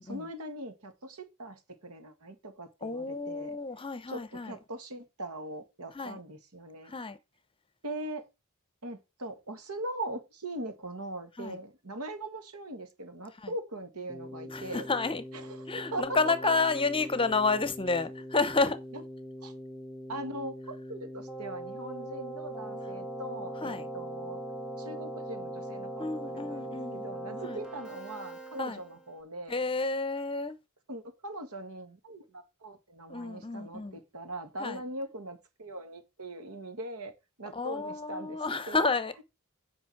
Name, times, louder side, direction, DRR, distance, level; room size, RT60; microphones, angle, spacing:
voice 1, 0.0-3.6 4.1-6.9 7.8-8.3 8.8-14.9 15.3-16.8 18.9-19.0 19.4-19.5 20.1-24.4 24.8-29.5 30.9-38.8, right 1 dB, 80° right, 1.9 m, -41 dB
voice 2, 2.8-4.5 5.9-6.2 6.8-7.2 11.4-11.6 13.4-13.5 14.5-15.2 15.7-18.8 23.6-23.9 26.0-27.0 27.4-27.6 28.6-28.8 29.5-30.6 33.1-34.0 34.6-34.8 37.5-39.2, left 3 dB, 25° left, 0.8 m, -30 dB
Keyboard (musical), 14.1-29.1, right 1 dB, 5° right, 1.8 m, -41 dB
9.0 x 5.2 x 6.0 m
head